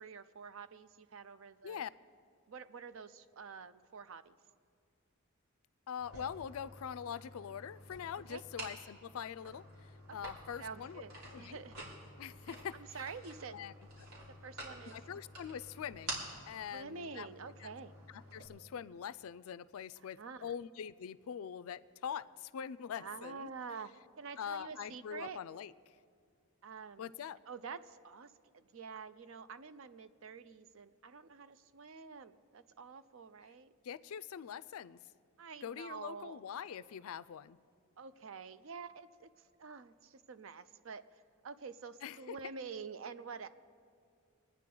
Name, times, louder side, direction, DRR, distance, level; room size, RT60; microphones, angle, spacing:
voice 1, 0.0-1.8 2.5-4.3 8.3-8.4 10.2-10.3 10.6-11.8 12.7-13.6 14.4-14.9 16.7-18.0 20.2-20.5 23.0-23.9 24.2-25.4 26.6-27.1 27.5-33.7 35.4-36.4 38.0-39.3 39.6-41.0 41.4-43.5, right 5 dB, 60° right, 13 dB, 0.5 m, -47 dB
voice 2, 5.9-11.0 11.3-11.6 12.2-12.8 13.5-13.7 14.9-17.3 17.6-17.7 18.1-23.5 24.4-25.7 27.0-27.4 33.8-35.0 35.6-37.6 42.0-42.4, left 8 dB, 70° left, 16 dB, 0.3 m, -43 dB
sound 1, 6.0-18.5, right 1 dB, 80° right, 3.2 m, -50 dB
23.5 x 9.3 x 3.8 m, 2.3 s
head